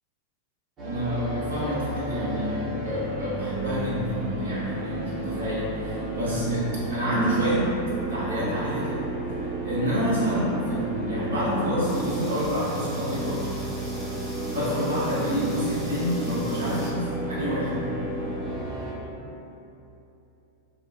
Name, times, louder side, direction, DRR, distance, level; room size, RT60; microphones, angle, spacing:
sound 1, 0.8-18.9, right 1 dB, 30° right, 0.7 m, -32 dB
voice 1, 0.8-7.7 8.1-9.1 9.6-13.4 14.4-17.8, equal, 65° right, -9 dB, 0.7 m, -28 dB
sound 2, 11.8-16.9, equal, 5° left, 0.7 m, -45 dB
2.7 x 2.3 x 2.4 m, 2.9 s
figure-of-eight pair, 90°, 0 cm